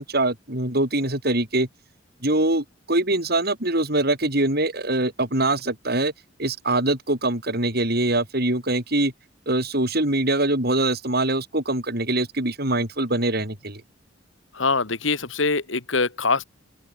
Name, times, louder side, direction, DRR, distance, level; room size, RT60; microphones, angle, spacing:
voice 1, 0.0-1.7 2.2-6.1 6.4-9.1 9.5-13.8, right 2 dB, 55° right, 6.2 m, -23 dB
voice 2, 14.5-16.4, left 4 dB, 80° left, 2.1 m, -23 dB
open air
head